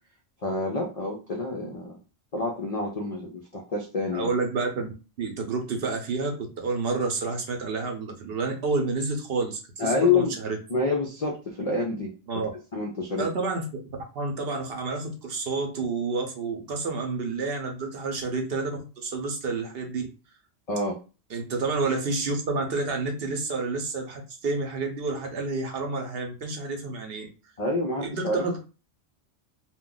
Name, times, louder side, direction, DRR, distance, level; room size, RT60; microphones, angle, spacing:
voice 1, 0.4-2.0 2.3-4.3 9.8-10.4 10.7-12.1 12.7-13.3 20.7-21.0 27.6-28.4, left 3 dB, 55° left, 0 dB, 0.4 m, -27 dB
voice 2, 4.1-10.6 12.3-12.5 13.2-20.0 21.3-27.3 28.0-28.6, right 3 dB, 60° right, 3 dB, 0.8 m, -29 dB
2.4 x 2.2 x 3.7 m, 0.33 s
omnidirectional pair, 1.2 m